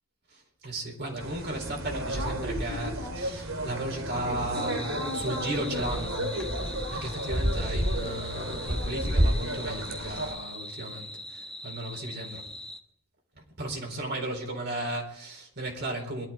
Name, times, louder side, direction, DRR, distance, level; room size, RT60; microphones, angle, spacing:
voice 1, 0.3-12.5 13.4-16.3, right 1 dB, 55° right, 1 dB, 4.1 m, -35 dB
sound 1, 1.2-10.3, equal, 80° right, 3.0 m, -31 dB
sound 2, 4.5-12.8, left 2 dB, 5° left, 1.2 m, -41 dB
22.5 x 12.0 x 4.4 m, 0.68 s
head